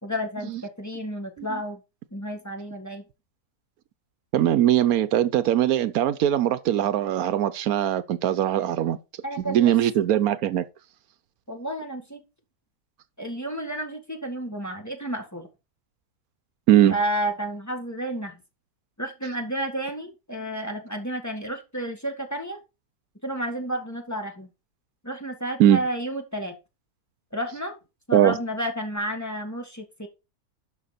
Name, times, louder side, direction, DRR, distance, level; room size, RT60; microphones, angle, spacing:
voice 1, 0.0-1.8 2.1-3.0 9.2-10.1 11.5-12.2 13.2-15.5 16.9-18.4 19.0-22.6 23.2-24.5 25.0-26.5 27.3-27.8 28.1-30.1, right 1 dB, 10° left, 1.7 m, -31 dB
voice 2, 4.3-9.0 9.5-10.7 16.7-17.0 25.6-25.8 28.1-28.4, right 11 dB, 80° right, 1.1 m, -20 dB
11.5 x 5.8 x 4.3 m
omnidirectional pair, 1.6 m